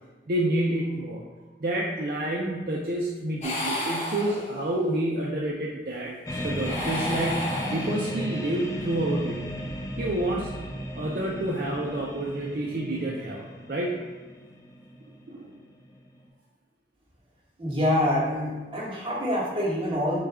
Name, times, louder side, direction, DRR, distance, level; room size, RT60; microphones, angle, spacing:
voice 1, 0.3-1.2 1.6-9.4 10.0-10.5 11.0-14.0 15.3-15.5, right 1 dB, 55° right, -3 dB, 0.5 m, -29 dB
sound 1, 3.4-4.9 6.5-8.3, left 1 dB, 40° left, 0.8 m, -33 dB
sound 2, 6.2-16.3, equal, 20° left, 0.4 m, -35 dB
voice 2, 17.6-20.3, left 1 dB, 30° right, -7 dB, 1.3 m, -26 dB
6.3 x 2.3 x 3.6 m, 1.3 s
head